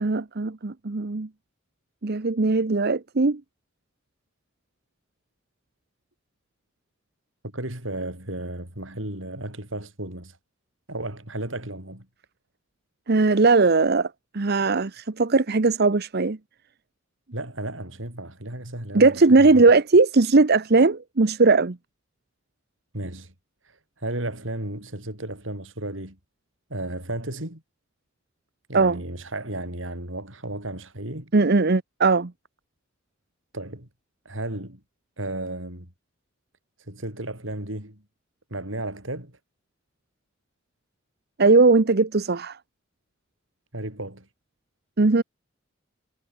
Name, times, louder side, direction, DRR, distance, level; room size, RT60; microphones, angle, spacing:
voice 1, 0.0-1.3 2.0-3.4 13.1-16.4 18.9-21.8 28.7-29.0 31.3-32.3 41.4-42.6 45.0-45.2, right 3 dB, 55° right, 0.8 m, -19 dB
voice 2, 7.4-10.4 10.9-12.1 17.3-19.7 22.9-23.3 24.0-26.2 26.7-27.6 28.7-31.3 33.5-33.9 34.3-34.8 35.2-35.9 36.9-38.0 38.5-39.4 43.7-44.3, right 1 dB, 70° right, 7.2 m, -34 dB
head